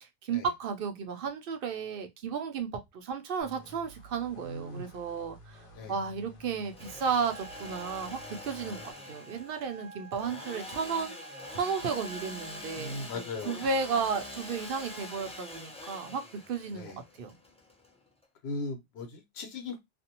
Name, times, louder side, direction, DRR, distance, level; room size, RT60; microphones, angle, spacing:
voice 1, 0.0-11.1 11.5-17.4, right 5 dB, 65° right, 0.7 m, -34 dB
sound 1, 3.4-8.9, equal, 60° left, 0.8 m, -53 dB
voice 2, 4.4-4.9 5.7-5.9 8.6-8.7 12.8-13.6 16.7-17.0 18.4-19.8, left 3 dB, 85° left, 0.9 m, -38 dB
Engine / Sawing, 6.6-18.2, left 2 dB, 10° left, 0.4 m, -45 dB
Wind instrument woodwind instrument, 7.3-12.7, right 3 dB, 80° right, 1.2 m, -49 dB
2.5 x 2.1 x 2.8 m
omnidirectional pair, 1.1 m